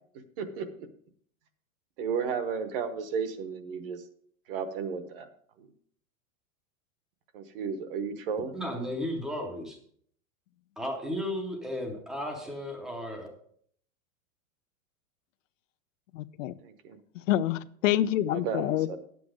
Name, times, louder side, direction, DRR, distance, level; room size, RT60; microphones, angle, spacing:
voice 1, 0.4-0.9 2.0-4.0 4.5-5.3 5.6-5.7 7.3-8.6 16.6-17.0 18.3-19.0, right 6 dB, 45° right, 1.0 m, -33 dB
voice 2, 8.5-9.8 10.8-13.3, left 1 dB, ahead, 0.6 m, -34 dB
voice 3, 16.1-16.6 17.3-19.0, left 13 dB, 65° left, 0.5 m, -27 dB
9.7 x 8.0 x 4.9 m
supercardioid pair, 175°, 41 cm